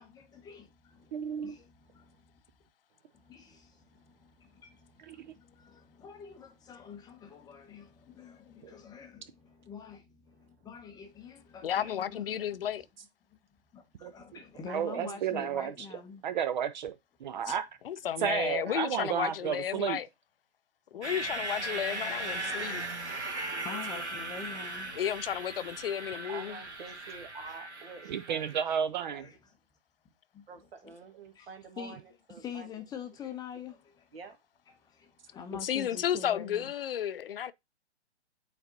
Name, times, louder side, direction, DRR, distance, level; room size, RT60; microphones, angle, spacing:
voice 1, 0.0-2.4 3.1-12.8 13.7-16.2 17.3-17.4 20.9-21.0 21.3-21.5 22.6-25.0 29.2-29.5 30.3-30.5 30.8-30.9 31.3-32.0 32.4-34.1 34.8-36.7, left 6 dB, 10° left, 0.7 m, -46 dB
voice 2, 1.1-1.5 5.1-5.3 8.6-8.7 14.0-14.1 14.7-15.7 16.2-17.0 17.2-17.7 18.2-20.0 23.1-23.7 28.1-29.3, right 8 dB, 45° right, 0.6 m, -32 dB
voice 3, 11.6-12.8 17.5-17.6 17.8-20.1 20.9-22.8 25.0-26.6 35.6-37.5, left 9 dB, 60° left, 0.5 m, -33 dB
voice 4, 14.7-15.5 18.6-19.8 26.3-28.6 29.1-29.2 30.5-32.7 34.1-34.4, right 5 dB, 60° right, 1.7 m, -47 dB
sound 1, 21.0-28.6, right 2 dB, 90° right, 1.5 m, -38 dB
8.8 x 4.1 x 2.7 m
figure-of-eight pair, 120°, 33 cm